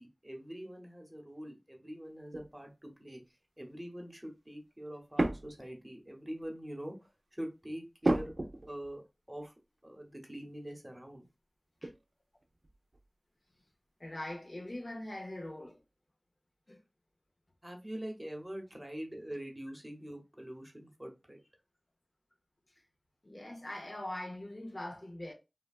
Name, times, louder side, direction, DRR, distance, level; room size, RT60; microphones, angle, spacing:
voice 1, 0.0-3.2 3.6-7.0 7.3-8.3 8.7-9.0 9.3-9.5 9.8-11.3 17.6-21.4, equal, 20° right, 0.9 m, -44 dB
sound 1, 2.2-2.6 5.1-5.9 6.4-6.7 8.0-9.0 9.4-9.5 11.8-12.1 12.4-13.1, right 2 dB, 65° right, 0.4 m, -33 dB
voice 2, 14.0-15.8 16.7-16.8 23.2-25.3, left 1 dB, 55° left, 0.6 m, -42 dB
3.2 x 2.2 x 2.3 m
wide cardioid pair, 45°, 0 cm